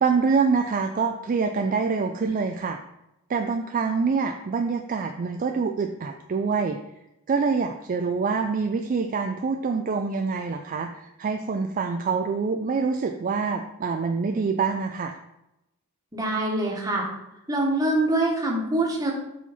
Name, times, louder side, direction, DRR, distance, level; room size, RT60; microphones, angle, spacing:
voice 1, 0.0-2.8 3.3-6.8 7.3-15.2, right 5 dB, 40° right, 5 dB, 0.4 m, -25 dB
voice 2, 16.1-17.1 17.5-19.1, right 2 dB, 15° right, -1 dB, 1.4 m, -24 dB
7.1 x 4.3 x 4.2 m, 0.89 s
head